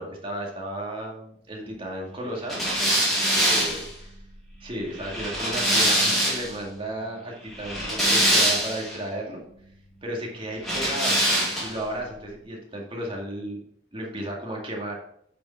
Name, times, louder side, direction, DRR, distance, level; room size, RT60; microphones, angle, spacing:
voice 1, 0.0-2.9 3.3-4.1 4.6-9.4 10.0-11.2 11.6-13.6 13.9-14.9, right 1 dB, 30° right, -2 dB, 2.1 m, -34 dB
sound 1, 2.5-6.6 7.5-9.0 10.6-11.9, right 1 dB, ahead, 2.5 m, -24 dB
9.3 x 5.1 x 4.4 m, 0.69 s
head